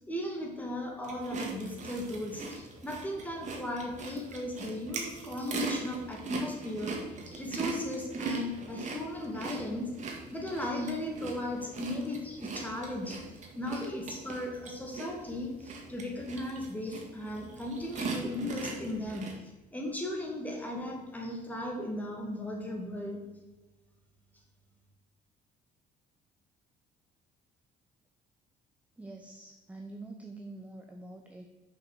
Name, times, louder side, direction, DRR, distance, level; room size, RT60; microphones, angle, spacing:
voice 1, 0.0-9.9 10.3-13.2 13.6-19.3 19.7-23.3, left 1 dB, 10° left, 0 dB, 2.3 m, -36 dB
sound 1, 1.0-19.3, right 4 dB, 45° right, 1.8 m, -40 dB
voice 2, 29.0-31.5, right 2 dB, 10° right, 3 dB, 0.8 m, -46 dB
6.7 x 5.8 x 6.7 m, 1.2 s
cardioid pair, 110°, 17 cm